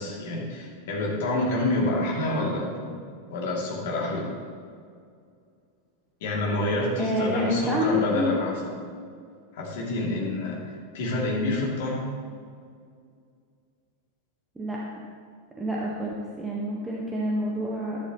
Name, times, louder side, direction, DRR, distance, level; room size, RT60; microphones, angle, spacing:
voice 1, 0.0-3.0 3.3-4.3 6.2-8.5 9.5-12.1, left 2 dB, 55° left, -3 dB, 2.8 m, -27 dB
voice 2, 7.0-8.4 14.6-15.0 15.6-18.0, equal, 10° right, -4 dB, 1.4 m, -28 dB
11.5 x 11.0 x 3.1 m, 2.2 s
figure-of-eight pair, 90°, 0 cm